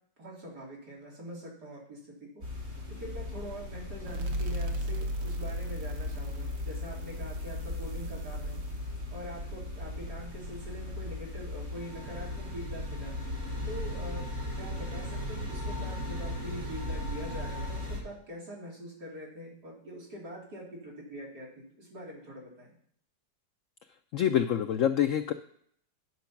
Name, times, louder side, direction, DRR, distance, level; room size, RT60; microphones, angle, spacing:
voice 1, 0.2-2.4 2.9-8.6 9.1-13.1 13.6-14.3 14.5-22.7, equal, 60° right, -4 dB, 3.5 m, -44 dB
sound 1, 2.4-18.0, left 1 dB, 35° right, 3.0 m, -38 dB
sound 2, 4.1-11.3, equal, 90° right, 1.7 m, -37 dB
voice 2, 24.1-25.3, left 10 dB, 90° left, 8 dB, 0.7 m, -26 dB
9.3 x 6.0 x 5.9 m, 0.63 s
omnidirectional pair, 1.9 m